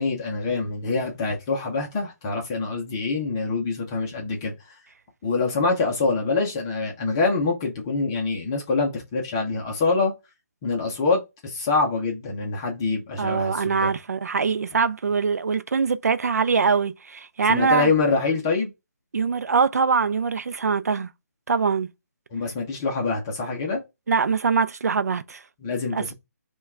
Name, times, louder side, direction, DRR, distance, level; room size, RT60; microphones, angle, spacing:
voice 1, 0.0-4.8 5.2-10.1 10.6-13.9 17.5-18.7 22.3-23.8 25.6-26.1, left 4 dB, 15° left, 0.5 m, -25 dB
voice 2, 13.2-17.9 19.1-21.1 21.5-21.9 24.1-25.4 25.9-26.1, right 5 dB, 65° right, 0.5 m, -23 dB
5.4 x 2.3 x 3.6 m
hypercardioid pair, 175°, 9 cm